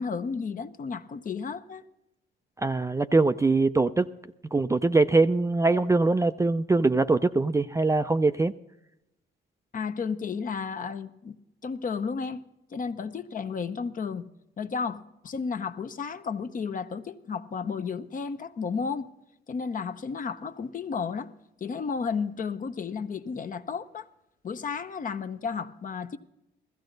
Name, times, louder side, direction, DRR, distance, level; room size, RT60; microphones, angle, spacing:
voice 1, 0.0-1.8 9.7-11.4 11.6-12.4 12.7-14.2 14.6-19.1 19.5-21.3 21.6-24.0 24.4-26.2, left 5 dB, 40° left, 0.8 m, -32 dB
voice 2, 2.6-4.1 4.5-8.5, right 3 dB, 15° right, 0.4 m, -22 dB
15.5 x 14.0 x 3.9 m
cardioid pair, 90°, 20 cm